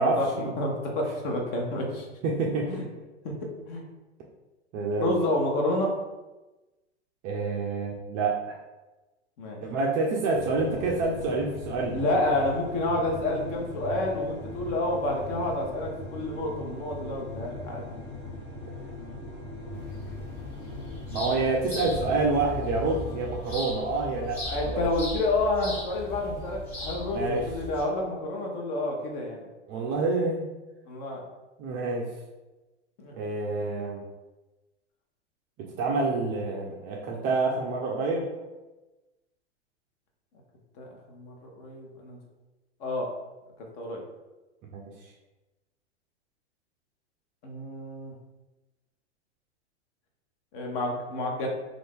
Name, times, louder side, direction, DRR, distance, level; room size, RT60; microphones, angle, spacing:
voice 1, 0.0-0.5 2.2-2.9 4.7-5.3 7.2-8.6 9.6-12.2 18.7-18.8 21.1-24.9 27.1-27.5 29.7-30.5 31.6-32.1 33.1-34.0 35.6-38.3 44.7-45.1, right 3 dB, 25° right, -2 dB, 0.3 m, -28 dB
voice 2, 0.6-2.1 2.7-2.8 3.2-3.4 3.7-3.8 5.0-5.9 9.4-9.6 11.9-17.8 24.4-29.4 30.9-31.2 33.0-33.2 40.8-42.2 42.8-43.1 43.8-44.0 47.4-48.1 50.5-51.5, left 2 dB, 45° left, 0 dB, 0.9 m, -29 dB
sound 1, 10.3-23.3, left 2 dB, 70° left, 1.0 m, -40 dB
sound 2, 19.7-27.8, left 1 dB, 25° left, 1.2 m, -38 dB
2.5 x 2.5 x 3.6 m, 1.1 s
hypercardioid pair, 110°, 35 cm